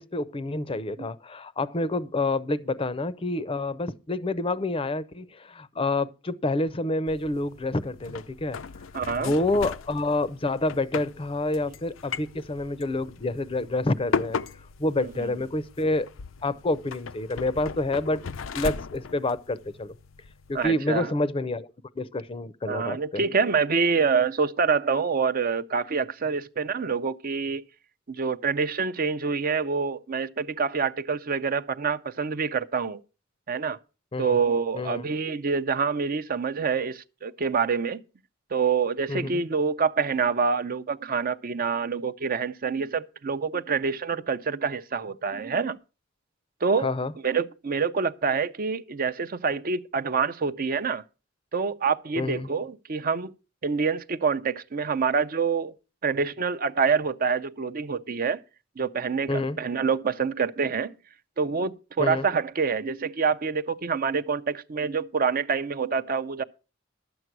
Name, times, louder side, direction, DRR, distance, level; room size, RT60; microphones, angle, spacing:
voice 1, 0.0-8.6 9.2-14.4 14.8-16.1 16.4-18.2 18.5-19.9 20.5-21.7 22.0-23.2 34.1-34.4 34.7-35.1 39.1-39.3 46.8-47.1 52.2-52.5 59.3-59.6 62.0-62.2, left 2 dB, 30° left, 0.6 m, -28 dB
sound 1, 7.1-20.7, left 5 dB, 80° left, 0.5 m, -37 dB
voice 2, 8.9-9.3 15.0-15.3 20.5-21.1 22.7-27.6 28.1-33.0 33.5-33.8 34.2-38.0 38.5-45.8 46.6-46.9 47.2-51.0 51.5-53.3 53.6-55.7 56.0-58.4 58.8-60.9 61.4-66.4, right 5 dB, 45° right, 0.6 m, -26 dB
12.0 x 8.0 x 6.0 m
head